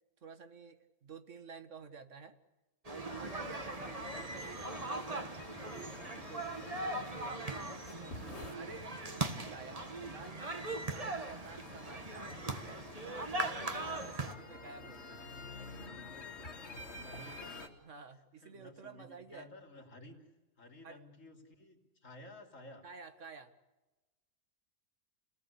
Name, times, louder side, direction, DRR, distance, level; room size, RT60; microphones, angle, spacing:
voice 1, 0.2-2.4 2.9-5.3 5.6-6.1 7.9-8.2 8.5-12.1 12.5-12.9 13.3-15.4 17.8-19.5 20.8-21.0 22.8-23.6, right 5 dB, 70° right, 9 dB, 1.9 m, -52 dB
sound 1, 2.8-14.3, right 2 dB, 30° right, 1.6 m, -40 dB
sound 2, 3.1-17.7, left 2 dB, 60° left, 2.5 m, -49 dB
voice 2, 16.6-17.6 18.4-20.2 20.6-22.8, left 1 dB, 85° left, 4 dB, 3.5 m, -54 dB
29.0 x 19.0 x 8.3 m, 1.1 s
omnidirectional pair, 1.3 m